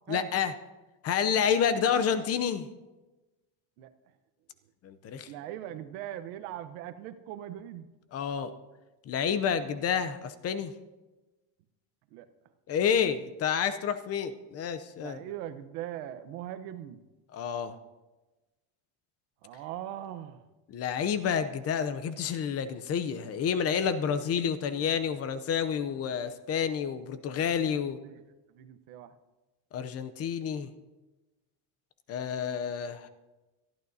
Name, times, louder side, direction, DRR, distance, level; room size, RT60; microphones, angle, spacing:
voice 1, 0.1-0.5 1.0-2.7 4.8-5.3 8.1-8.5 9.0-10.7 12.7-15.2 17.3-17.8 20.7-28.0 29.7-30.7 32.1-33.1, left 7 dB, 35° left, 11 dB, 0.6 m, -29 dB
voice 2, 5.3-7.9 8.4-8.7 9.6-9.7 12.1-12.3 15.0-17.0 19.4-20.4 27.6-28.2 28.5-29.2, right 12 dB, 85° right, 9 dB, 1.1 m, -41 dB
24.0 x 12.0 x 2.8 m, 1.1 s
cardioid pair, 160°, 44 cm